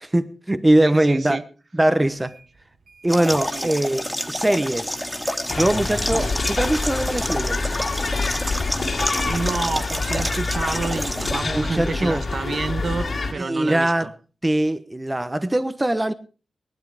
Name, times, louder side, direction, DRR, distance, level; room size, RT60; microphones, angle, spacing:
voice 1, 0.0-1.4 1.7-2.3 3.0-5.0 5.5-7.6 11.4-12.2 13.3-14.1 14.4-16.1, right 1 dB, 15° right, 1.0 m, -21 dB
voice 2, 0.8-1.4 3.5-3.7 6.1-6.3 9.2-14.1, right 4 dB, 55° right, 1.2 m, -29 dB
sound 1, 2.0-11.9, right 4 dB, 70° right, 1.5 m, -45 dB
sound 2, 3.1-11.4, equal, ahead, 2.2 m, -29 dB
sound 3, 5.5-13.3, left 3 dB, 55° left, 3.4 m, -27 dB
19.0 x 12.0 x 4.9 m
cardioid pair, 75°, 0 cm